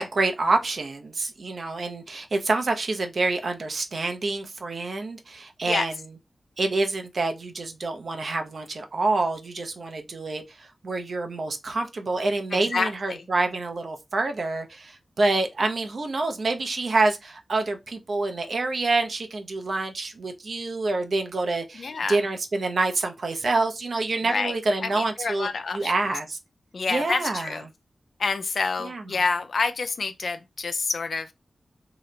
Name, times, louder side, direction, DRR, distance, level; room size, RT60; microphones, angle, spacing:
voice 1, 0.0-5.9 6.6-26.4 26.9-27.6 28.8-29.0, right 3 dB, 65° right, 0.6 m, -27 dB
voice 2, 12.5-13.2 21.7-22.2 24.3-24.5 24.8-25.9 26.7-27.6 28.2-31.3, left 4 dB, 75° left, 0.3 m, -28 dB
2.9 x 2.1 x 3.7 m
cardioid pair, 45°, 0 cm